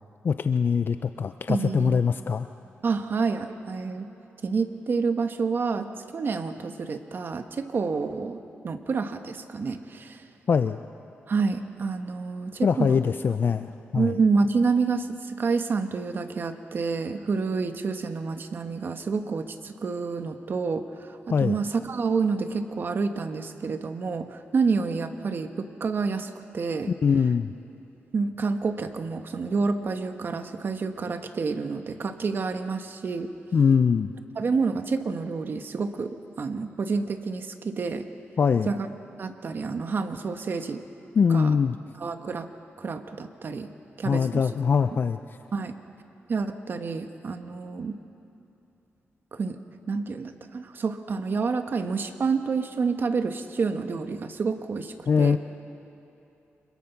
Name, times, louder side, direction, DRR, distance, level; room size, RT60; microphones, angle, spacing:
voice 1, 0.2-2.5 10.5-10.8 12.6-14.1 21.3-21.6 26.9-27.5 33.5-34.1 38.4-38.7 41.2-41.8 44.0-45.2 55.1-55.4, left 6 dB, 50° left, 10 dB, 0.5 m, -22 dB
voice 2, 1.5-2.0 2.8-4.1 4.4-10.2 11.3-13.0 13.9-26.9 28.1-33.3 34.3-36.1 36.4-38.0 38.7-38.9 39.2-40.8 41.3-41.6 42.0-42.5 42.8-43.7 44.0-44.4 44.9-45.0 45.5-45.7 46.3-48.0 49.3-49.6 49.9-55.4, right 4 dB, 50° right, 7 dB, 1.3 m, -28 dB
26.0 x 21.5 x 5.9 m, 2.8 s
wide cardioid pair, 105°, 4 cm